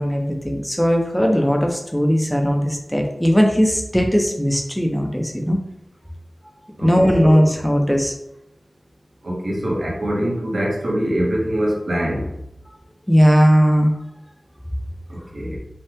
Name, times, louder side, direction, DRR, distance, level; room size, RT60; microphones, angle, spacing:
voice 1, 0.0-5.6 6.8-8.1 13.1-13.9, equal, 5° left, 2 dB, 0.9 m, -18 dB
voice 2, 6.8-7.5 9.2-12.3 15.1-15.6, equal, 65° right, -4 dB, 1.5 m, -23 dB
5.5 x 2.4 x 3.6 m, 0.84 s
wide cardioid pair, 50°, 0 cm